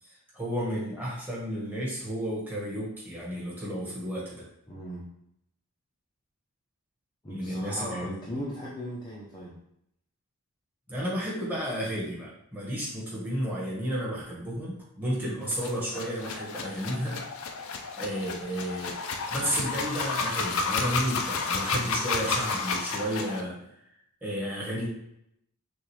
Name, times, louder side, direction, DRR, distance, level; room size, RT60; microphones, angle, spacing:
voice 1, 0.0-4.4 7.3-8.1 10.9-17.2 18.0-18.9 19.3-23.6 24.2-24.9, equal, 10° right, -6 dB, 1.5 m, -32 dB
voice 2, 4.7-5.1 7.2-9.6, equal, 20° left, -6 dB, 0.6 m, -37 dB
sound 1, 15.5-23.4, left 4 dB, 65° left, 0.5 m, -31 dB
6.2 x 2.5 x 3.2 m, 0.76 s
head